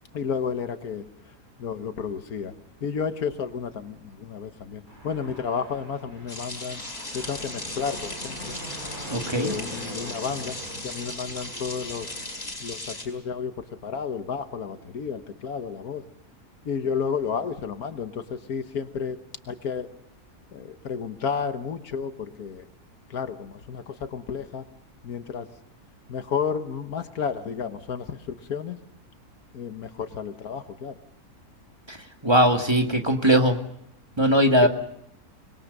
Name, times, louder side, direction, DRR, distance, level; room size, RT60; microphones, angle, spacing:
voice 1, 0.1-1.1 1.6-2.5 2.8-6.8 7.1-8.6 9.3-10.6 10.8-12.1 12.6-16.0 16.7-19.2 19.5-19.9 20.5-22.7 23.1-24.7 25.0-25.5 26.1-28.8 29.5-31.0 34.6-34.7, left 6 dB, 70° left, 9 dB, 1.7 m, -31 dB
Fixed-wing aircraft airplane, 4.9-12.5, equal, 65° right, 7.7 m, -41 dB
sound 1, 6.3-13.0, left 2 dB, 40° left, 5.0 m, -37 dB
voice 2, 9.1-9.5 31.9-32.0 32.2-33.6 34.2-34.7, equal, 15° right, 4 dB, 1.8 m, -20 dB
25.5 x 21.5 x 6.6 m, 0.74 s
omnidirectional pair, 1.6 m